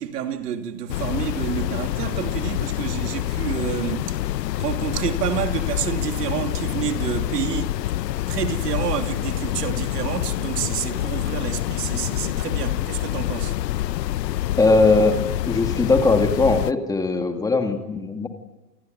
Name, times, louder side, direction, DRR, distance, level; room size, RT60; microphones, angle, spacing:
voice 1, 0.0-4.2 4.6-7.8 8.3-13.6, right 9 dB, 80° right, 2.9 m, -29 dB
sound 1, 0.9-16.7, left 14 dB, 85° left, 0.8 m, -26 dB
voice 2, 14.6-15.2 15.5-18.3, left 3 dB, 10° left, 2.1 m, -19 dB
28.0 x 20.5 x 9.3 m
supercardioid pair, 155°, 48 cm